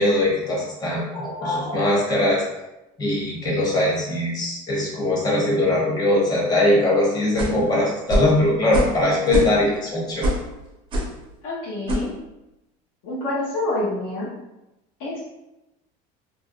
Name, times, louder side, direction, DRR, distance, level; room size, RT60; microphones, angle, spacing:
voice 1, 0.0-2.4 3.0-10.3, left 1 dB, 20° left, -3 dB, 0.6 m, -21 dB
sound 1, 7.4-7.6 8.1-8.3 8.7-9.0 9.3-9.8 10.2-10.5 10.9-11.2 11.9-12.1, equal, 30° right, 0.4 m, -23 dB
voice 2, 11.4-12.1 13.0-14.3 15.0-15.2, left 2 dB, 90° left, -8 dB, 0.8 m, -27 dB
2.5 x 2.0 x 2.5 m, 0.94 s
cardioid pair, 160°, 18 cm